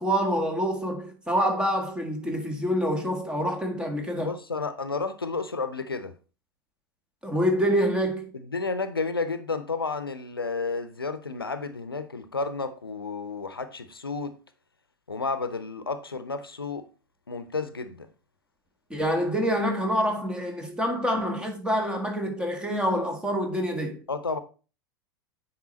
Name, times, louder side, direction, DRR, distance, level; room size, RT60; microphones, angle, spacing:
voice 1, 0.0-4.3 7.2-8.3 18.9-24.0, equal, 10° right, 1.9 m, -26 dB
voice 2, 4.2-6.1 8.3-14.4 15.1-16.9 17.3-18.1 24.1-24.4, left 4 dB, 85° left, 0.8 m, -31 dB
9.4 x 4.7 x 4.2 m
figure-of-eight pair, 85°, 12 cm